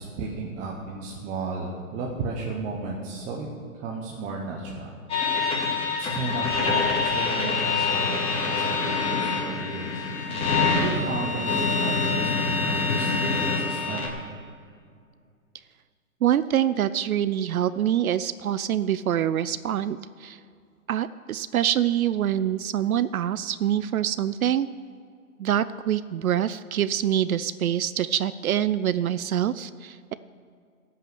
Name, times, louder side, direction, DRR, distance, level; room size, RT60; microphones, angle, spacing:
voice 1, 0.0-3.5 3.8-5.0 5.7-14.1, right 4 dB, 20° right, -1 dB, 1.0 m, -34 dB
sound 1, 5.1-14.1, left 4 dB, 15° left, 2.0 m, -25 dB
voice 2, 16.2-20.4 20.9-24.7 25.4-30.1, right 10 dB, 70° right, 15 dB, 0.5 m, -25 dB
12.5 x 5.7 x 7.8 m, 2.2 s
hypercardioid pair, 130°, 44 cm